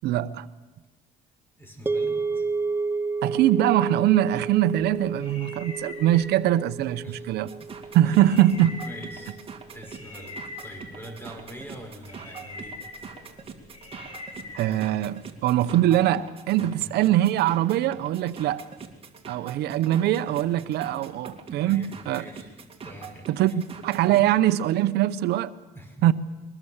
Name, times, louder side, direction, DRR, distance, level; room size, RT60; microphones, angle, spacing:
voice 1, 0.0-0.5 3.2-7.5 7.9-8.7 14.5-18.6 19.3-22.2 23.3-25.5 26.0-26.1, right 13 dB, 80° right, 0.8 m, -22 dB
voice 2, 1.6-2.4 7.0-7.3 7.6-7.7 8.0-8.4 8.8-9.4 9.7-12.8 16.6-16.9 21.6-23.5 24.1-24.2 25.7-26.0, right 1 dB, 15° left, 5.5 m, -44 dB
sound 1, 1.9-10.1, right 4 dB, 15° right, 0.6 m, -32 dB
sound 2, 4.8-15.4, left 2 dB, 35° left, 4.8 m, -44 dB
sound 3, 7.3-24.3, right 6 dB, 35° right, 2.6 m, -43 dB
22.0 x 21.0 x 7.2 m
cardioid pair, 110°, 17 cm